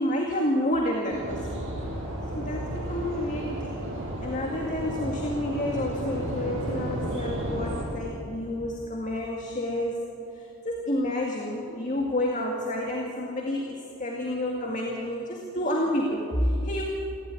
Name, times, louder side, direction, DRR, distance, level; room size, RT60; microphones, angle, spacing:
voice 1, 0.0-1.6 2.3-3.7 4.2-10.0 10.3-16.8, left 1 dB, 35° left, 0 dB, 2.1 m, -29 dB
sound 1, 1.1-7.8, right 1 dB, 60° right, 7.9 m, -33 dB
28.0 x 13.0 x 9.6 m, 2.7 s
head